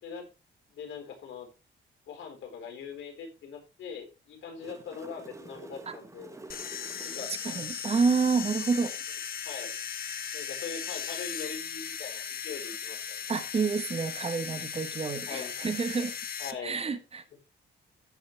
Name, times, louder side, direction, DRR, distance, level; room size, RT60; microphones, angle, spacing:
voice 1, 0.7-1.5 2.1-6.4 7.0-7.3 9.4-9.7 10.3-13.2 15.3-15.5 16.4-16.8, left 6 dB, 80° left, 4.1 m, -41 dB
sound 1, 4.3-7.9 11.8-11.9, right 2 dB, 15° right, 1.3 m, -48 dB
sound 2, 6.5-16.5, left 8 dB, 50° left, 1.2 m, -37 dB
voice 2, 7.4-9.0 13.3-16.2 16.6-17.4, right 5 dB, 30° right, 1.1 m, -29 dB
14.0 x 6.6 x 3.3 m
cardioid pair, 130°, 19 cm